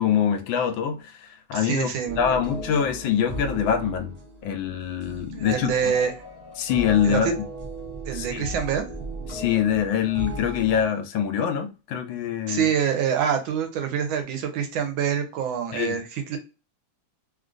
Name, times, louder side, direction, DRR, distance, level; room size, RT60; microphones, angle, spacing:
voice 1, 0.0-1.9 2.2-4.1 4.4-5.9 6.6-7.3 8.1-8.5 9.3-12.7 15.7-16.0, left 8 dB, 75° left, 1.3 m, -24 dB
voice 2, 1.5-2.4 5.3-6.1 7.0-7.2 8.1-8.9 12.5-16.4, right 8 dB, 85° right, 1.5 m, -26 dB
sound 1, 2.0-10.8, right 1 dB, 35° right, 0.7 m, -36 dB
3.3 x 2.5 x 2.4 m
omnidirectional pair, 2.2 m